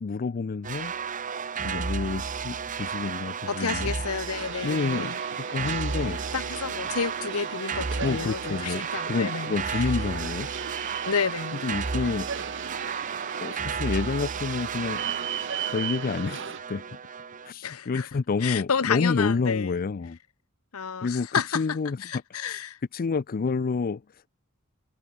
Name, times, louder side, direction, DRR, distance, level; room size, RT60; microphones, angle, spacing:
voice 1, 0.0-0.9 1.6-3.9 4.6-6.2 8.0-10.5 11.6-12.3 13.4-15.0 15.7-17.0 17.4-20.2 21.0-21.3 21.5-22.0 22.5-22.6 22.9-24.3, left 4 dB, 45° left, 0.4 m, -29 dB
sound 1, 0.6-17.5, right 5 dB, 35° right, 0.8 m, -33 dB
voice 2, 3.5-5.2 5.9-9.9 11.0-11.6 17.6-18.1 18.4-19.7 20.7-22.8, left 6 dB, 85° left, 0.9 m, -31 dB
sound 2, 4.2-16.6, right 7 dB, 60° right, 1.2 m, -38 dB
head